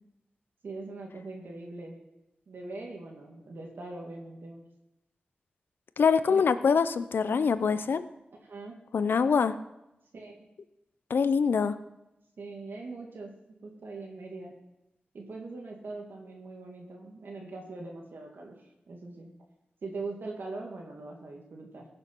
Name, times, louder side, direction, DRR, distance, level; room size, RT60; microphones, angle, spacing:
voice 1, 0.6-2.0 2.5-4.6 6.3-6.4 8.4-8.8 10.1-10.5 12.4-13.3 13.6-14.5 15.1-19.3 19.8-21.9, right 3 dB, 85° right, 0 dB, 2.3 m, -41 dB
voice 2, 6.0-8.0 8.9-9.5 11.1-11.8, left 5 dB, 85° left, 13 dB, 0.6 m, -24 dB
16.0 x 6.9 x 6.1 m, 0.92 s
wide cardioid pair, 65°, 3 cm